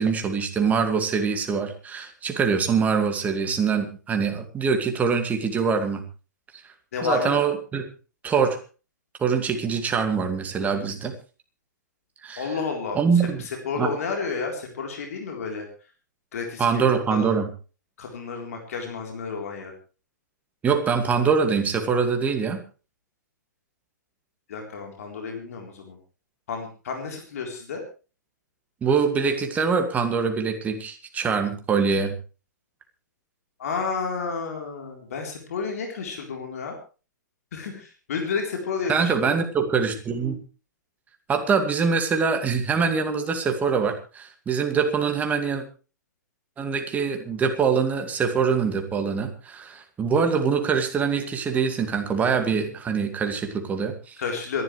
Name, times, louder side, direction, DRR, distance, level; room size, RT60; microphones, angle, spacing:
voice 1, 0.0-6.0 7.0-7.8 8.2-8.6 9.2-11.1 12.2-12.5 13.0-13.4 13.8-13.9 16.6-17.5 20.6-22.6 28.8-32.1 38.9-40.4 41.3-45.6 46.6-54.2, right 5 dB, 15° right, 6 dB, 2.2 m, -24 dB
voice 2, 6.9-7.4 12.4-13.0 13.5-15.7 16.3-17.3 18.0-19.7 24.5-26.0 26.5-27.8 33.6-36.8 37.5-39.4 54.2-54.6, left 5 dB, 55° left, 2 dB, 3.8 m, -31 dB
26.5 x 11.5 x 3.3 m, 0.35 s
figure-of-eight pair, 110°, 10 cm